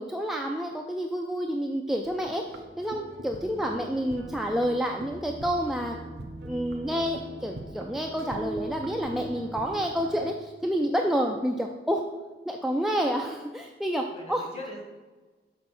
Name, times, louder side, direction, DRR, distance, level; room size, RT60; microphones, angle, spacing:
voice 1, 0.0-6.0 6.4-12.0 12.5-14.5, equal, ahead, 1 dB, 0.3 m, -29 dB
sound 1, 2.0-10.4, right 1 dB, 75° right, 0.8 m, -40 dB
voice 2, 3.3-3.7 14.1-14.8, left 1 dB, 35° left, 1 dB, 1.4 m, -42 dB
6.6 x 4.2 x 6.0 m, 1.3 s
head